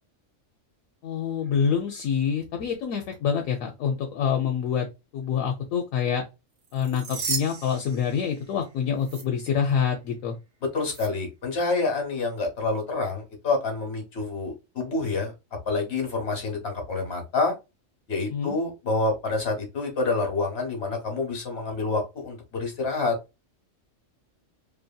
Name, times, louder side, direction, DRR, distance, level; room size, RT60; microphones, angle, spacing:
voice 1, 1.0-4.9 5.1-6.2 6.7-10.4 18.3-18.6, left 7 dB, 80° left, 1.0 m, -26 dB
sound 1, 6.6-8.7 9.0-9.2 10.9-11.1, right 5 dB, 70° right, 1.1 m, -35 dB
voice 2, 10.7-15.3 15.7-17.5 18.1-23.1, left 3 dB, 55° left, 1.1 m, -27 dB
2.7 x 2.6 x 2.2 m
omnidirectional pair, 1.4 m